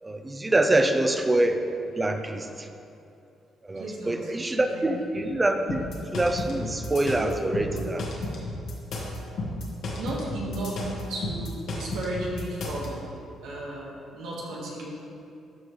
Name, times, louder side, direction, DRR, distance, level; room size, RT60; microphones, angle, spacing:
voice 1, 0.0-1.6 2.0-2.7 3.6-5.9 6.1-8.1, right 2 dB, 20° right, 6 dB, 0.6 m, -25 dB
voice 2, 3.7-4.3 4.7-5.4 9.6-13.1 13.4-14.9, right 1 dB, 90° right, -4 dB, 1.7 m, -35 dB
sound 1, 5.7-12.9, left 2 dB, 75° left, 1.4 m, -33 dB
12.5 x 5.3 x 3.3 m, 2.6 s
cardioid pair, 90°, 0 cm